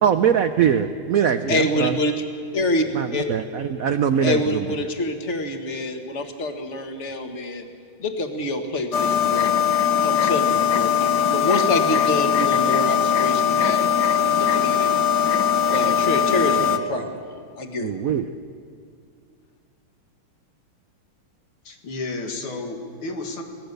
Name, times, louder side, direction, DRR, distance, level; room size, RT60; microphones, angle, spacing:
voice 1, 0.0-2.0 2.9-4.7 17.8-18.3, right 8 dB, 80° right, 9 dB, 0.7 m, -22 dB
voice 2, 1.5-2.1 2.5-3.3 4.2-7.6 8.0-9.5 10.0-14.9 15.7-17.2 17.6-17.9, left 2 dB, 35° left, 5 dB, 1.7 m, -26 dB
sound 1, 8.9-16.8, left 8 dB, 55° left, 1.5 m, -20 dB
voice 3, 21.6-23.4, left 2 dB, 85° left, 3 dB, 2.8 m, -32 dB
24.5 x 18.0 x 6.7 m, 2.2 s
omnidirectional pair, 2.3 m